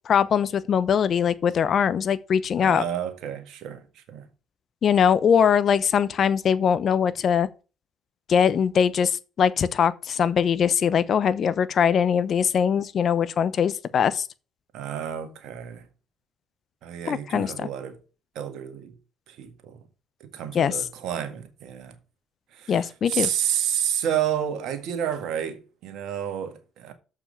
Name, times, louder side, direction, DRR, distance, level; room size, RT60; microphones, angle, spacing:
voice 1, 0.1-2.8 4.8-7.5 8.3-14.2 17.1-17.7 20.5-20.8 22.7-23.3, left 7 dB, 55° left, 0.9 m, -22 dB
voice 2, 2.6-4.3 14.7-15.8 16.8-18.0 18.4-18.9 19.3-19.8 20.2-22.0 22.5-26.9, right 9 dB, 70° right, 1.8 m, -30 dB
7.0 x 5.8 x 6.8 m
hypercardioid pair, 60°, 0 cm